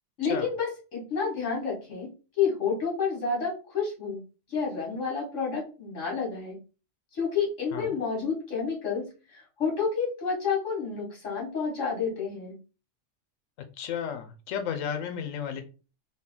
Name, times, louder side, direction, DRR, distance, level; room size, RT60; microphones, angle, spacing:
voice 1, 0.2-2.1 2.4-4.2 4.5-6.6 7.1-12.6, left 5 dB, 70° left, 1.9 m, -30 dB
voice 2, 13.8-15.6, left 8 dB, 85° left, 1.0 m, -33 dB
3.9 x 2.2 x 3.7 m
omnidirectional pair, 1.3 m